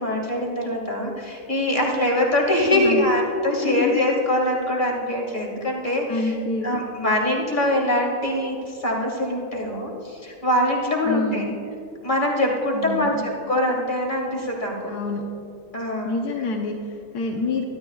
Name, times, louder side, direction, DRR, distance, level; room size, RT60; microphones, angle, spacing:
voice 1, 0.0-6.4 6.6-11.5 12.0-13.1 13.5-14.9 15.7-16.2, left 1 dB, 30° left, -1 dB, 2.3 m, -23 dB
voice 2, 2.7-3.1 3.6-4.0 6.1-6.8 11.0-11.5 12.7-13.3 14.9-15.2 16.0-17.6, left 3 dB, 85° left, 2 dB, 1.5 m, -27 dB
23.5 x 12.5 x 2.4 m, 2.5 s
omnidirectional pair, 1.6 m